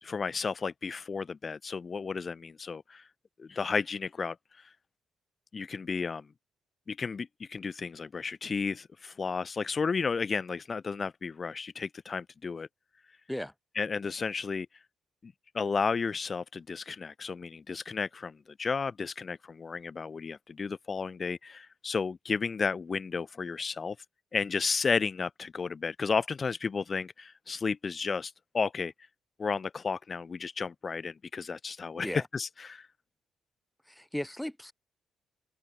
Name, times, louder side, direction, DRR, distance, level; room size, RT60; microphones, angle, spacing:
voice 1, 0.0-3.1 3.4-4.7 5.5-6.3 6.9-12.7 13.8-14.7 15.2-24.0 24.3-28.9 29.4-32.9, left 5 dB, 45° left, 3.5 m, -33 dB
voice 2, 33.9-34.7, left 1 dB, 5° left, 6.1 m, -36 dB
hypercardioid pair, 45°, 0 cm